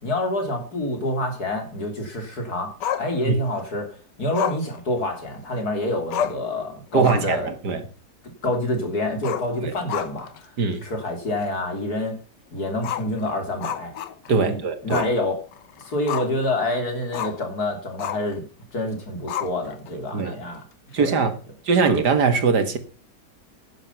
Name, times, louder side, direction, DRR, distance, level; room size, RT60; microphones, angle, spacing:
voice 1, 0.0-2.7 3.0-7.5 8.4-10.5 10.8-12.1 12.5-13.9 14.4-15.4 15.8-18.5 18.7-20.6 21.0-21.2, left 1 dB, 65° left, 3.8 m, -27 dB
Growling, 2.8-3.6 4.3-5.6 5.8-5.9 6.1-6.5 6.9-7.4 7.7-7.8 9.1-10.4 10.7-10.8 11.4-11.5 12.8-14.4 14.9-15.2 15.5-16.5 17.1-17.4 18.0-18.4 19.3-19.9, left 10 dB, 85° left, 1.6 m, -31 dB
voice 2, 6.9-7.8 9.6-9.7 10.6-10.8 14.3-15.1 20.1-20.3 20.9-21.4 21.6-22.8, right 5 dB, 70° right, 2.3 m, -21 dB
11.0 x 10.0 x 5.8 m
omnidirectional pair, 1.8 m